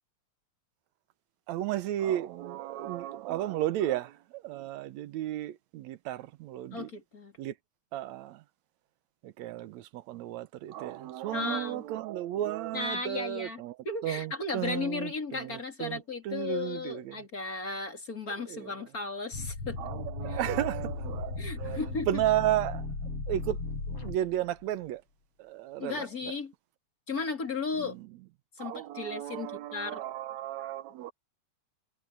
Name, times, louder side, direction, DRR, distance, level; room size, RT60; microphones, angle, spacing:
voice 1, 1.5-6.9 7.4-7.6 7.9-8.4 9.2-13.8 14.0-17.2 18.3-18.9 19.8-22.9 23.3-23.6 23.9-25.0 25.4-26.3 27.8-28.1 28.6-31.1, right 13 dB, 75° right, 2.1 m, -34 dB
voice 2, 6.7-7.3 11.3-11.8 12.7-19.9 20.3-20.4 21.4-22.2 25.8-26.5 27.1-28.0 28.6-30.0, left 4 dB, 30° left, 3.1 m, -35 dB
sound 1, 19.3-24.6, left 3 dB, 50° left, 6.4 m, -36 dB
omnidirectional pair, 3.4 m